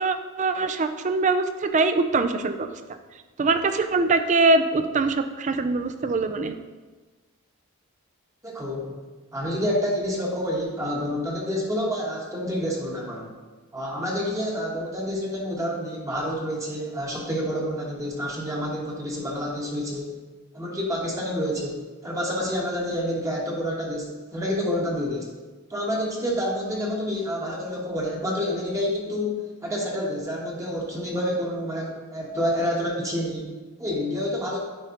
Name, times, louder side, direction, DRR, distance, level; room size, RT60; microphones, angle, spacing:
voice 1, 0.0-2.8 3.4-6.5, right 3 dB, 35° right, 9 dB, 0.4 m, -23 dB
voice 2, 8.4-9.0 9.3-13.3 13.7-20.1 20.5-25.3 25.7-34.6, equal, 15° right, -3 dB, 1.1 m, -28 dB
9.9 x 4.9 x 2.9 m, 1.3 s
head